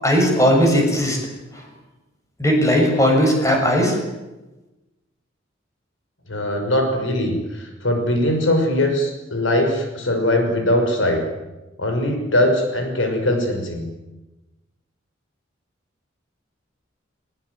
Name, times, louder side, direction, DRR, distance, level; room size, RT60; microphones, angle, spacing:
voice 1, 0.0-1.2 1.5-1.6 2.4-4.0, equal, 15° left, 1 dB, 6.9 m, -17 dB
voice 2, 6.3-11.2 11.8-13.8, left 1 dB, 80° left, 5 dB, 5.9 m, -21 dB
23.0 x 21.0 x 9.5 m, 1.1 s
head